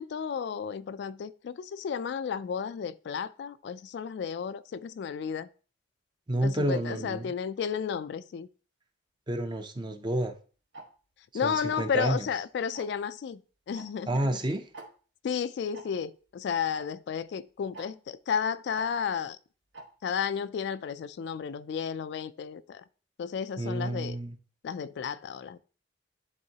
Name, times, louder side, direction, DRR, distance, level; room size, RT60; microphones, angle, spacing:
voice 1, 0.0-5.5 6.4-8.5 11.3-13.4 13.7-14.4 15.2-19.4 20.0-22.8 23.2-24.2 24.6-25.6, left 7 dB, 65° left, 0.3 m, -33 dB
voice 2, 6.3-7.3 9.3-10.3 11.4-12.3 14.1-14.6 23.6-24.4, right 1 dB, 25° right, 0.5 m, -30 dB
Tick-tock, 10.7-10.9 11.7-12.0 12.7-13.0 13.7-13.9 14.1-14.2 14.7-14.9 15.7-15.8 16.7-16.9 17.7-17.9 18.7-18.9 19.7-19.9, right 3 dB, 80° right, 1.2 m, -44 dB
10.5 x 3.7 x 2.8 m
head